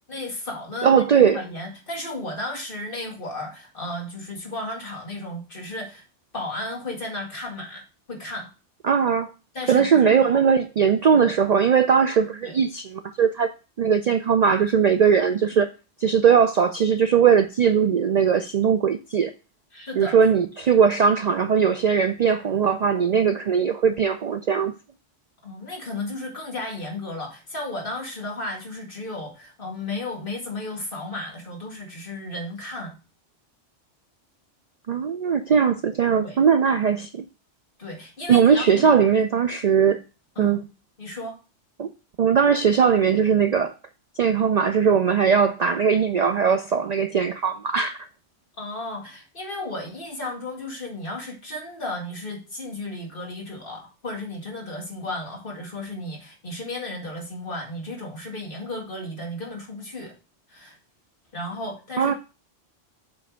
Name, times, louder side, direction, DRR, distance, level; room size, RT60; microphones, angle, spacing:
voice 1, 0.1-6.0 6.3-7.8 8.1-8.5 9.5-10.4 11.2-11.3 12.4-12.6 19.7-20.2 25.4-33.0 36.1-36.4 37.8-38.8 40.4-40.6 41.0-41.4 48.6-60.1 60.5-60.8 61.3-62.1, left 2 dB, 45° left, 2.2 m, -34 dB
voice 2, 0.8-1.4 8.8-9.3 9.7-13.5 13.8-15.7 16.0-19.3 20.0-24.7 34.9-37.2 38.3-40.0 40.4-40.6 41.8-41.9 42.2-43.7 44.2-48.0 62.0-62.1, right 7 dB, 80° right, 0.3 m, -19 dB
7.1 x 3.3 x 6.2 m
omnidirectional pair, 1.2 m